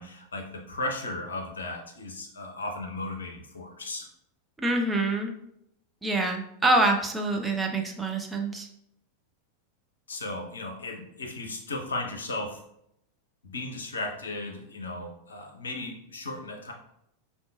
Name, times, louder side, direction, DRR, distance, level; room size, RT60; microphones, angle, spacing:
voice 1, 0.0-4.1 10.1-12.6 13.4-16.7, left 2 dB, 70° left, 2 dB, 0.6 m, -35 dB
voice 2, 4.6-5.3 6.0-8.7, right 2 dB, 10° right, 2 dB, 0.5 m, -26 dB
5.1 x 2.4 x 2.3 m, 0.76 s
figure-of-eight pair, 90°, 0 cm